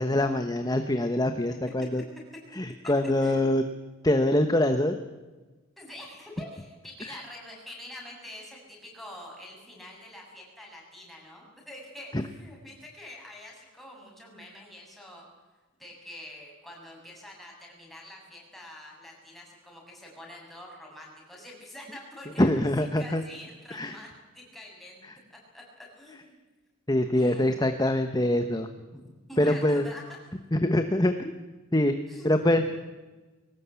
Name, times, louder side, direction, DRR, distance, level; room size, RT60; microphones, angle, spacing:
voice 1, 0.0-2.0 2.5-3.6 4.0-5.0 7.0-7.2 12.1-12.2 22.4-23.2 23.7-24.0 25.0-25.1 26.9-28.7 29.4-29.8 30.5-31.3 31.7-31.9 32.2-32.7, left 1 dB, 20° left, 7 dB, 1.1 m, -24 dB
voice 2, 1.5-1.9 3.2-3.7 5.8-15.3 15.8-22.7 23.0-24.1 24.3-25.0 25.3-26.4 27.1-27.6 28.9-30.0 32.1-32.5, left 1 dB, ahead, -2 dB, 7.2 m, -46 dB
22.0 x 18.5 x 8.4 m, 1.2 s
head